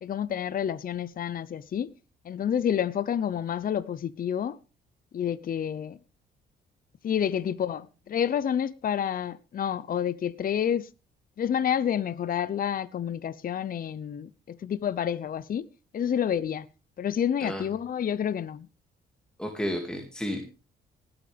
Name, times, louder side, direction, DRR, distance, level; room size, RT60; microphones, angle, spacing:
voice 1, 0.0-1.9 2.2-4.6 5.1-6.0 7.0-10.9 11.4-15.7 15.9-16.7 17.0-18.7, left 9 dB, 45° left, 0.7 m, -29 dB
voice 2, 19.4-20.4, equal, 5° left, 2.2 m, -32 dB
19.5 x 8.8 x 3.4 m
cardioid pair, 90°, 20 cm